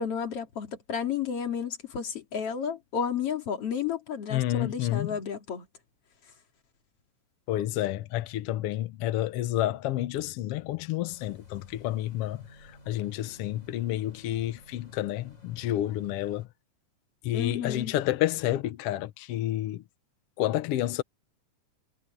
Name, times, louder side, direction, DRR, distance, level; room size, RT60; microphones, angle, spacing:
voice 1, 0.0-5.7 17.3-17.9, left 7 dB, 50° left, 3.3 m, -32 dB
voice 2, 4.3-5.2 7.5-16.5 17.2-19.8 20.4-21.0, left 14 dB, 75° left, 1.4 m, -30 dB
sound 1, 11.1-16.5, equal, 25° left, 7.2 m, -55 dB
omnidirectional pair, 3.6 m